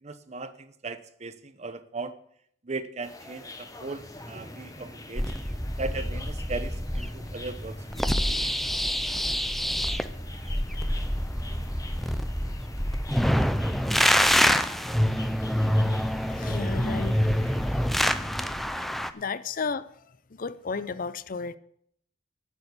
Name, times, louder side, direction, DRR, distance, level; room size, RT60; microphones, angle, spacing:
voice 1, 0.0-2.2 2.6-5.3 5.8-8.1, right 3 dB, 35° right, 0.8 m, -37 dB
sound 1, 3.0-17.9, left 2 dB, 20° left, 1.1 m, -45 dB
sound 2, 5.2-19.1, equal, ahead, 0.5 m, -26 dB
voice 2, 16.3-17.2 17.6-17.7 18.8-18.9 19.1-19.9 20.3-21.6, left 4 dB, 50° left, 0.5 m, -33 dB
11.0 x 7.1 x 8.2 m
head